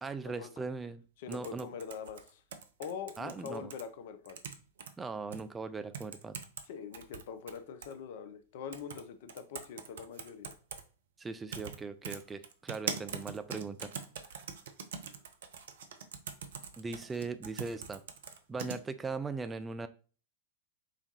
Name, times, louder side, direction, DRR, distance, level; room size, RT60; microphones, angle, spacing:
voice 1, 0.0-1.0 1.3-1.7 3.2-3.7 5.0-6.4 11.2-13.9 16.8-18.0 18.5-19.9, right 4 dB, 15° right, 10 dB, 0.3 m, -39 dB
voice 2, 1.2-2.4 2.8-4.4 6.6-10.5, left 7 dB, 55° left, 10 dB, 0.4 m, -43 dB
sound 1, 1.3-3.8 4.2-4.9 5.3-5.4 5.9-6.6 6.9-7.9 8.7-9.0 9.3-10.8 11.5-11.8 12.0-18.8, right 6 dB, 60° right, 0.5 m, -42 dB
5.0 x 3.4 x 2.7 m, 0.37 s
figure-of-eight pair, 90°, 0 cm